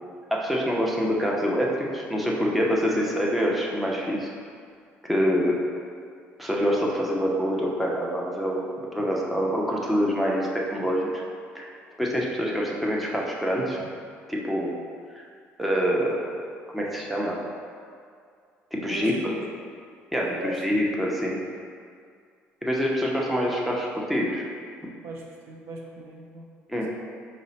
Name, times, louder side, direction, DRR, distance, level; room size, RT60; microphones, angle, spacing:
voice 1, 0.3-4.3 5.0-5.6 6.4-8.7 8.9-11.1 11.5-11.7 12.0-13.8 14.3-14.8 15.2-15.3 15.6-16.2 16.7-17.4 18.7-19.3 20.1-20.4 20.6-21.4 22.6-24.4 26.7-26.9, equal, ahead, -3 dB, 0.6 m, -25 dB
voice 2, 18.8-19.4 20.2-20.6 25.0-26.5, right 2 dB, 75° right, -1 dB, 0.6 m, -38 dB
5.2 x 2.1 x 4.0 m, 2.2 s
cardioid pair, 105°, 4 cm